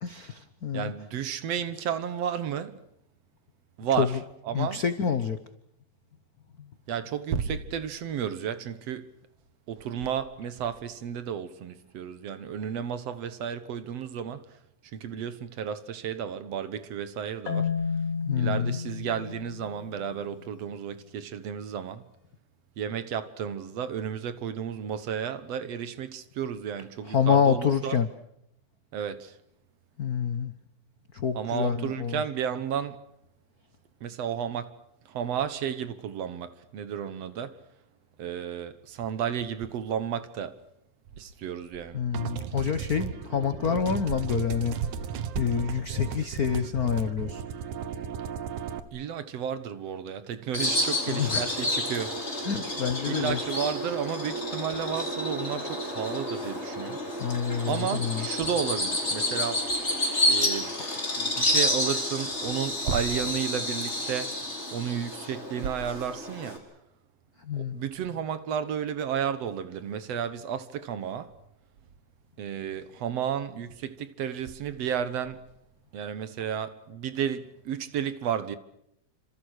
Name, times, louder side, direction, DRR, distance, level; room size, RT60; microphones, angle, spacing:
voice 1, 0.0-0.9 3.9-4.2 4.5-5.4 18.2-18.8 27.0-28.1 30.0-30.5 31.1-32.2 41.9-44.7 45.3-47.4 51.1-51.5 52.4-53.6 57.2-58.3 67.4-67.8, left 7 dB, 85° left, 0.8 m, -27 dB
voice 2, 0.7-2.8 3.8-4.1 4.4-4.8 6.9-9.1 9.7-14.4 14.9-17.7 18.3-22.0 22.8-28.0 28.9-29.3 31.3-33.0 34.0-34.7 35.1-37.5 38.2-40.6 41.2-42.0 48.9-52.1 53.1-57.0 57.7-59.6 60.3-60.7 61.2-64.4 64.7-66.6 67.7-71.3 72.4-75.4 75.9-78.6, right 8 dB, 60° right, 2.2 m, -32 dB
Marimba xylophone, 17.5-20.4, left 6 dB, 70° left, 4.1 m, -32 dB
sound 1, 42.1-48.8, right 8 dB, 80° right, 2.7 m, -35 dB
Bird vocalization bird call bird song, 50.5-66.6, left 1 dB, 20° left, 5.6 m, -30 dB
28.0 x 26.5 x 6.5 m
omnidirectional pair, 3.4 m